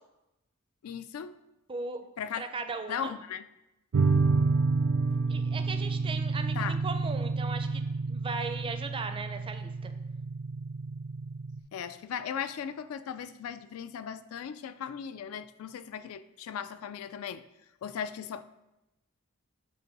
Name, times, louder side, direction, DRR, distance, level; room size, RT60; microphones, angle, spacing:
voice 1, 0.8-1.4 2.2-2.4 2.9-3.5 6.5-6.8 11.7-17.4 17.8-18.4, left 8 dB, 75° left, 12 dB, 0.3 m, -37 dB
voice 2, 1.7-2.0 2.4-3.1 5.3-9.9, right 4 dB, 25° right, 7 dB, 0.4 m, -37 dB
sound 1, 3.9-11.6, right 4 dB, 80° right, 0.4 m, -29 dB
7.6 x 2.6 x 5.1 m, 0.94 s
head